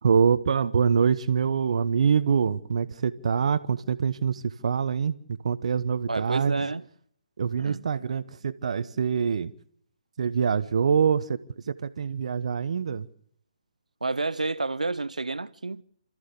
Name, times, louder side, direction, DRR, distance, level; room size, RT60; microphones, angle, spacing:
voice 1, 0.0-6.7 7.4-9.5 10.2-13.1, right 6 dB, 60° right, 1.1 m, -25 dB
voice 2, 6.1-6.8 7.6-7.8 14.0-15.8, right 3 dB, 90° right, 0.7 m, -29 dB
28.5 x 14.0 x 6.8 m
figure-of-eight pair, 145°, 4 cm